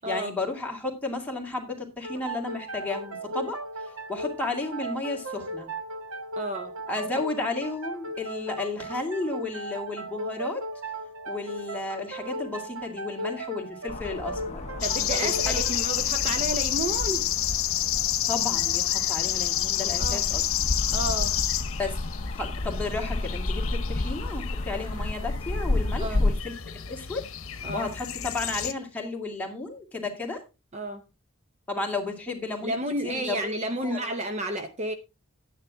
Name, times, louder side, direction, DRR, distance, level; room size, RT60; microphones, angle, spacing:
voice 1, 0.0-5.7 6.9-10.6 11.3-14.6 15.2-15.5 18.3-20.4 21.8-22.0 22.3-30.4 31.7-32.8 33.0-33.5 33.8-34.0, left 3 dB, 5° left, 0 dB, 2.3 m, -33 dB
sound 1, 2.0-17.4, right 1 dB, 70° right, 1.3 m, -37 dB
voice 2, 6.4-6.7 14.8-17.3 20.0-20.2 20.9-21.3 26.0-26.2 27.6-27.9 30.7-31.0 32.6-34.9, right 1 dB, 30° right, 7 dB, 0.8 m, -31 dB
sound 2, 13.9-26.4, left 2 dB, 30° left, 0.6 m, -31 dB
sound 3, 14.8-28.7, left 12 dB, 65° left, 1.0 m, -29 dB
11.0 x 9.6 x 3.5 m, 0.28 s
head